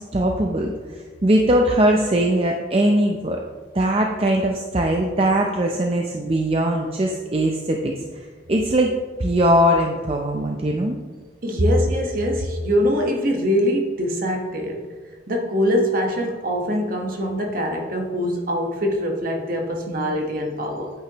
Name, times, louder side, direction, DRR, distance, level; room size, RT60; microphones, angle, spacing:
voice 1, 0.0-3.4 3.7-8.9 9.2-11.0, right 1 dB, 30° right, 2 dB, 0.6 m, -21 dB
voice 2, 11.4-14.8 15.3-20.9, equal, 50° right, 1 dB, 1.4 m, -23 dB
9.3 x 8.5 x 3.0 m, 1.5 s
head